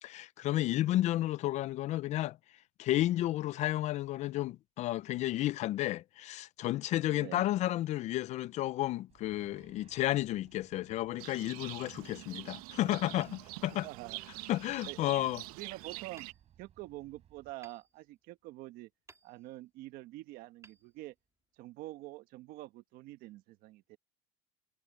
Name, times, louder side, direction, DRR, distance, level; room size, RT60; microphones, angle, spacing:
voice 1, 0.0-2.4 2.8-13.9 14.5-15.4, left 14 dB, 40° left, 0.5 m, -32 dB
voice 2, 7.1-7.5 13.7-14.6 14.9-16.3 16.6-18.9 19.2-21.1 21.5-24.0, right 18 dB, 55° right, 1.3 m, -47 dB
sound 1, 9.1-17.5, right 10 dB, 35° right, 5.8 m, -62 dB
Livestock farm animals working animals, 11.2-16.3, right 20 dB, 85° right, 1.1 m, -46 dB
Hammer, 16.2-16.8 17.6-18.6 19.1-19.8 20.6-21.6, right 4 dB, 15° right, 3.4 m, -62 dB
supercardioid pair, 135°, 18 cm